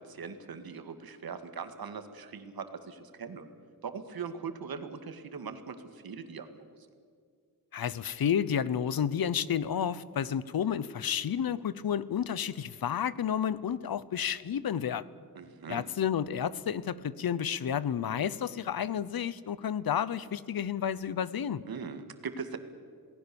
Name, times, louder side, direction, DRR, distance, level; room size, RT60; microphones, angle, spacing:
voice 1, 0.0-3.5 3.8-6.7 15.4-15.8 21.7-22.6, right 5 dB, 80° right, 8 dB, 2.1 m, -40 dB
voice 2, 7.7-15.1 15.7-21.6, left 8 dB, 80° left, 18 dB, 0.9 m, -31 dB
28.0 x 19.0 x 7.1 m, 2.2 s
wide cardioid pair, 170°, 36 cm